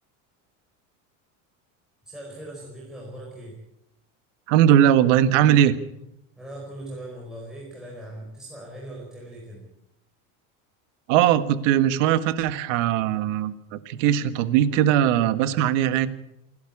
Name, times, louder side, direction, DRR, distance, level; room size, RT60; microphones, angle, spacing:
voice 1, 2.0-3.5 6.4-9.6, right 1 dB, ahead, -5 dB, 4.9 m, -39 dB
voice 2, 4.5-5.7 11.1-16.1, right 11 dB, 75° right, 12 dB, 1.7 m, -20 dB
27.5 x 12.0 x 8.6 m, 0.85 s
cardioid pair, 165°, 38 cm